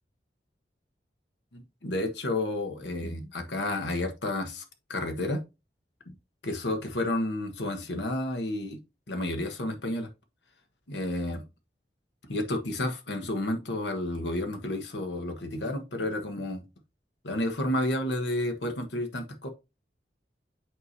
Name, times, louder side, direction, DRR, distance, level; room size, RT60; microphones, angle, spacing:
voice 1, 1.5-4.6 4.9-5.4 6.1-6.2 6.4-8.8 9.1-10.1 10.9-11.4 12.2-16.6 17.2-19.5, left 1 dB, 90° left, 1.3 m, -31 dB
8.0 x 4.9 x 2.7 m
head